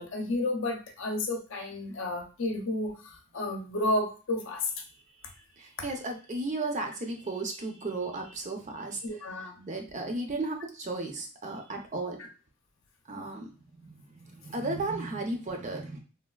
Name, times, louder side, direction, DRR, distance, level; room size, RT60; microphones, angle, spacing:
voice 1, 0.0-4.7 9.0-9.7 13.1-13.2, left 2 dB, 65° left, 3 dB, 0.6 m, -32 dB
voice 2, 5.6-9.0 9.7-12.2 13.1-13.5 13.8-16.0, right 2 dB, 35° right, 3 dB, 0.5 m, -34 dB
3.4 x 2.4 x 2.3 m, 0.35 s
head